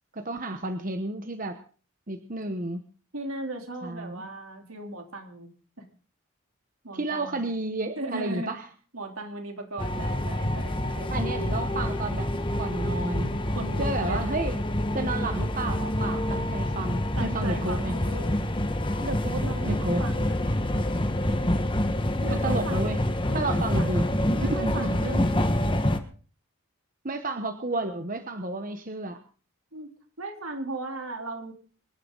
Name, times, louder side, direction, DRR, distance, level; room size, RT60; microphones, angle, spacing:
voice 1, 0.1-1.6 2.1-2.8 3.8-4.3 6.9-8.6 11.1-12.3 12.6-13.3 13.8-14.6 14.9-18.0 19.7-20.0 22.3-23.0 23.3-24.1 24.4-25.0 27.0-29.2, right 2 dB, 40° right, 8 dB, 1.1 m, -31 dB
voice 2, 3.1-5.9 6.8-7.4 8.0-8.6 8.9-11.1 13.5-14.2 17.2-18.3 19.0-20.4 22.2-23.0 23.3-25.7 29.7-29.9 30.2-31.5, right 2 dB, 80° right, 4 dB, 3.5 m, -37 dB
sound 1, 9.8-26.0, left 1 dB, 25° left, 1.4 m, -27 dB
25.0 x 11.0 x 4.0 m, 0.39 s
head